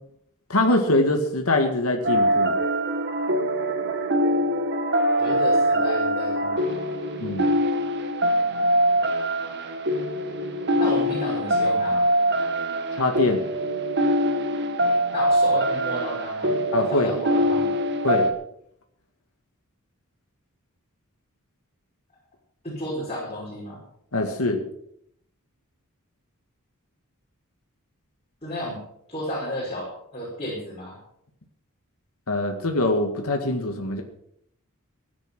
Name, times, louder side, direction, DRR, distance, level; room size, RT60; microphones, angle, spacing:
voice 1, 0.5-2.6 7.2-7.5 13.0-13.4 16.7-17.1 18.0-18.3 24.1-24.6 32.3-34.0, left 2 dB, 75° left, 4 dB, 2.0 m, -23 dB
sound 1, 2.0-18.3, equal, 55° right, 1.8 m, -23 dB
voice 2, 5.2-6.6 10.8-12.0 15.1-16.6 16.9-17.7 22.6-23.8 28.4-28.8 29.1-31.0, equal, 30° left, -6 dB, 5.6 m, -32 dB
16.5 x 10.0 x 6.1 m, 0.73 s
head